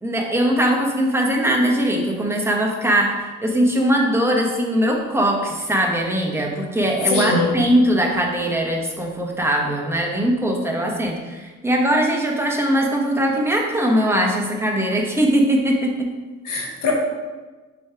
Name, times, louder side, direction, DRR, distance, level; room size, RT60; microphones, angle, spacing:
voice 1, 0.0-3.1 3.4-16.1, equal, 10° right, 0 dB, 1.1 m, -20 dB
voice 2, 7.1-7.7 16.4-16.9, left 3 dB, 85° left, -1 dB, 1.4 m, -21 dB
6.2 x 3.2 x 4.9 m, 1.3 s
cardioid pair, 90°, 30 cm